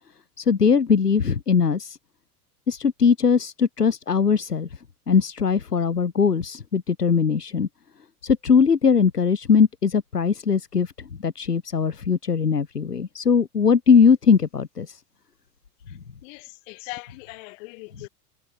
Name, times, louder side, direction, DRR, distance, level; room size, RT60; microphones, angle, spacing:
voice 1, 0.4-2.0 2.7-4.7 5.1-7.7 8.2-10.9 11.2-15.0, left 6 dB, 85° left, 2.1 m, -20 dB
voice 2, 16.2-18.1, left 28 dB, 55° left, 7.6 m, -40 dB
figure-of-eight pair, 85°, 46 cm